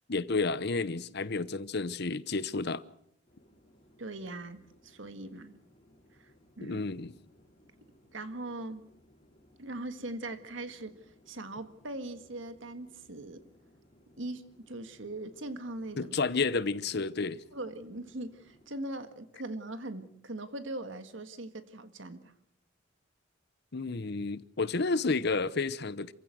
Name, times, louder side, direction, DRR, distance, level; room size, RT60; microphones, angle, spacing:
voice 1, 0.1-2.8 6.6-7.1 16.0-17.4 23.7-26.1, left 3 dB, 55° left, 0.9 m, -31 dB
Chatter / Fixed-wing aircraft airplane, 3.3-18.7, equal, 30° left, 5.8 m, -63 dB
voice 2, 4.0-5.6 6.2-6.3 6.6-6.8 8.1-8.8 9.6-11.0 11.3-13.4 14.2-16.2 17.5-22.2, right 2 dB, 75° right, 1.8 m, -40 dB
27.5 x 15.5 x 7.8 m
head